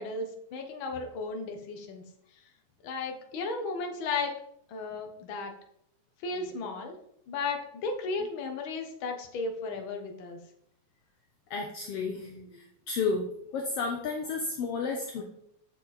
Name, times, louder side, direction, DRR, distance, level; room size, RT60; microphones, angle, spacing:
voice 1, 0.0-2.0 2.8-4.3 4.7-5.5 6.2-7.0 7.3-10.4, left 3 dB, 55° left, 4 dB, 1.5 m, -34 dB
voice 2, 11.5-13.3 13.5-15.2, left 4 dB, 70° left, 3 dB, 1.5 m, -32 dB
8.1 x 6.9 x 4.2 m, 0.72 s
omnidirectional pair, 3.6 m